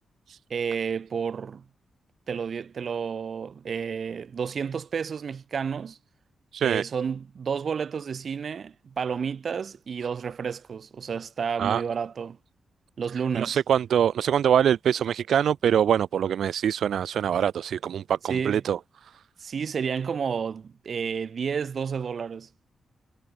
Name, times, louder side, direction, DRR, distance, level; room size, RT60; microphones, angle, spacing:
voice 1, 0.5-1.6 2.3-6.0 6.6-12.4 13.0-13.6 18.3-18.6 19.4-22.5, right 6 dB, 60° right, 1.3 m, -31 dB
voice 2, 6.5-6.8 11.6-11.8 13.3-19.1, right 9 dB, 80° right, 0.4 m, -24 dB
cardioid pair, 75°, 0 cm